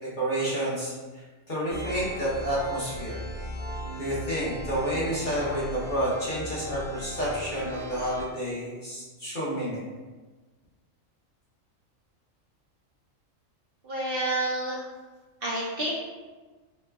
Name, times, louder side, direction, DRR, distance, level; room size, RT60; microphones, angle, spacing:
voice 1, 0.0-0.9 1.5-3.2 4.0-9.8, right 1 dB, 45° left, -8 dB, 0.9 m, -29 dB
sound 1, 1.7-8.2, equal, 20° right, 0.8 m, -38 dB
voice 2, 13.8-14.8 15.4-16.0, right 1 dB, 60° right, -6 dB, 0.7 m, -29 dB
3.0 x 2.1 x 3.4 m, 1.3 s
omnidirectional pair, 1.3 m